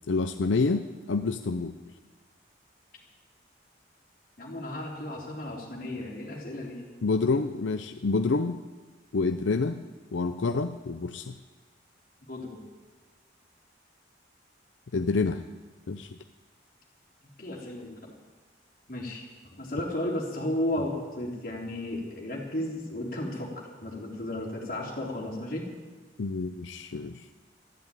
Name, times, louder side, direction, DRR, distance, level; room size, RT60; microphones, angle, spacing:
voice 1, 0.1-1.7 7.0-8.6 9.1-9.8 10.1-11.3 14.9-15.4 15.9-16.2 26.2-27.3, left 3 dB, 85° left, 8 dB, 0.6 m, -28 dB
voice 2, 4.4-6.8 12.3-12.6 17.4-18.1 18.9-25.7, left 1 dB, 50° left, -2 dB, 3.6 m, -34 dB
13.0 x 10.5 x 9.1 m, 1.3 s
head